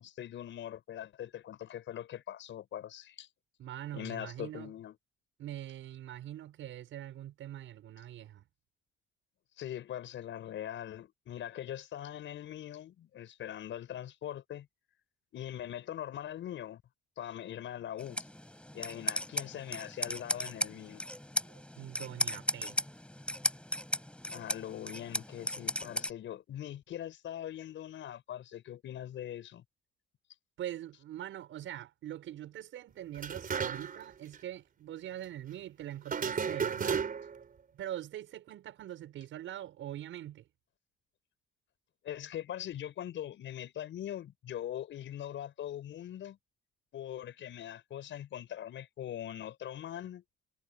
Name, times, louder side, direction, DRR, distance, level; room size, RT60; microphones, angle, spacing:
voice 1, 0.0-3.3 3.9-5.0 9.6-14.7 15.3-16.8 17.2-18.3 18.7-21.0 24.3-29.6 42.0-46.4 46.9-50.2, left 11 dB, 75° left, 6.3 m, -42 dB
voice 2, 3.6-4.7 5.4-8.4 21.4-22.8 30.6-37.1 37.7-40.5, right 12 dB, 80° right, 7.1 m, -43 dB
sound 1, 18.0-26.1, left 1 dB, 5° left, 7.9 m, -36 dB
sound 2, 33.2-34.1 34.3-34.4 36.1-37.4, right 6 dB, 45° right, 4.1 m, -33 dB
cardioid pair, 90°, 20 cm